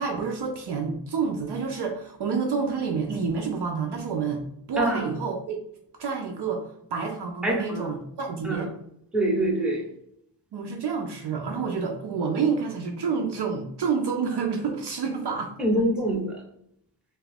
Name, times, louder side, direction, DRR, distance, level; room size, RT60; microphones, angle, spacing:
voice 1, 0.0-5.6 6.0-6.6 6.9-8.7 10.5-15.5, right 5 dB, 65° right, 2 dB, 0.5 m, -28 dB
voice 2, 7.4-7.9 8.4-8.7 9.1-9.8 15.6-16.3, right 1 dB, ahead, -2 dB, 0.7 m, -24 dB
2.8 x 2.4 x 3.3 m, 0.72 s
wide cardioid pair, 140°, 44 cm